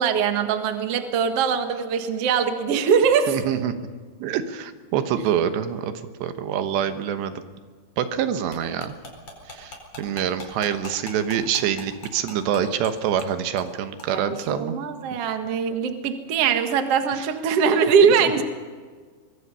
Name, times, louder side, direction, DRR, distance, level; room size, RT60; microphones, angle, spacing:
voice 1, 0.0-3.4 14.1-18.4, right 6 dB, 50° right, 6 dB, 1.9 m, -21 dB
voice 2, 3.3-3.7 4.2-5.9 6.2-7.4 8.0-9.0 9.5-14.8, right 9 dB, 85° right, 9 dB, 3.4 m, -26 dB
sound 1, 8.5-12.9 13.2-13.3 13.6-13.7 14.0-14.1, left 3 dB, 35° left, 5.3 m, -40 dB
24.0 x 22.5 x 5.6 m, 1.5 s
omnidirectional pair, 4.9 m